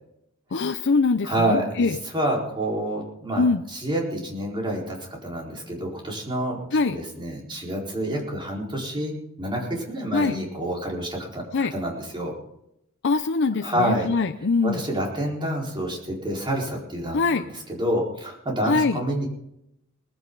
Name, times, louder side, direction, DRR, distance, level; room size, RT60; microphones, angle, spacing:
voice 1, 0.5-1.9 3.3-3.6 6.7-7.0 10.1-10.4 11.5-11.7 13.0-14.8 17.1-17.4 18.7-19.0, left 4 dB, 55° left, 7 dB, 0.6 m, -23 dB
voice 2, 1.2-6.6 6.8-12.3 13.6-14.1 14.6-19.3, right 1 dB, 20° right, -2 dB, 4.5 m, -28 dB
19.5 x 15.5 x 4.0 m, 0.81 s
head